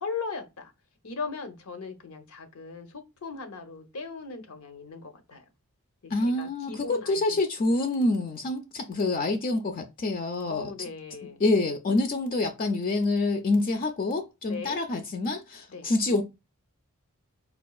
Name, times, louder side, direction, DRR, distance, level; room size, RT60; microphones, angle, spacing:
voice 1, 0.0-0.7 1.0-5.4 6.0-7.4 10.5-11.4 14.5-14.8 15.7-15.9, left 4 dB, 85° left, 0.8 m, -38 dB
voice 2, 6.1-10.7 11.4-16.2, left 2 dB, 40° left, 0.4 m, -27 dB
4.3 x 2.4 x 2.3 m
head